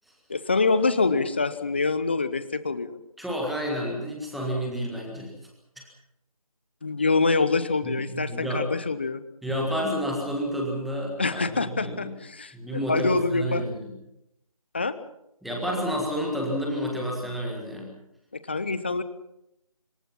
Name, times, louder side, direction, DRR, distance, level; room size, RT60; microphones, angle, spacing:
voice 1, 0.3-3.0 6.8-9.2 11.2-13.6 14.7-15.0 18.5-19.0, left 4 dB, 20° left, 13 dB, 0.8 m, -25 dB
voice 2, 3.2-5.3 7.8-8.6 9.4-11.1 11.5-12.1 12.5-13.9 15.4-17.9, equal, ahead, -2 dB, 1.6 m, -30 dB
26.5 x 21.0 x 5.8 m, 0.83 s
figure-of-eight pair, 165°, 19 cm